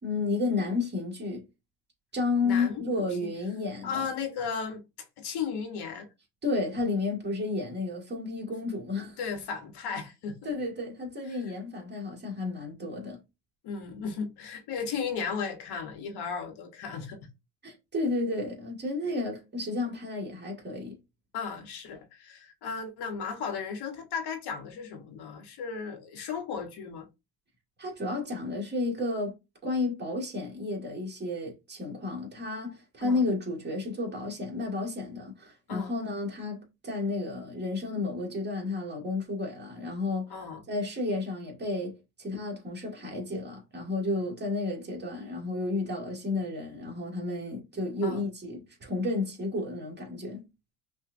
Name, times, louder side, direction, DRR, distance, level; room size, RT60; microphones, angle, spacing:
voice 1, 0.0-1.4 2.1-4.1 6.4-9.2 10.5-13.2 17.6-21.0 27.8-29.3 29.6-40.3 40.7-50.5, left 3 dB, 25° right, 1.9 m, -32 dB
voice 2, 2.4-2.8 3.2-3.3 3.8-6.1 9.2-10.5 11.2-11.4 13.6-17.3 21.3-27.1 33.0-33.2 35.7-36.0 40.3-40.6 48.0-48.2, left 6 dB, 65° left, 1.1 m, -35 dB
5.8 x 2.4 x 2.5 m
cardioid pair, 135°, 42 cm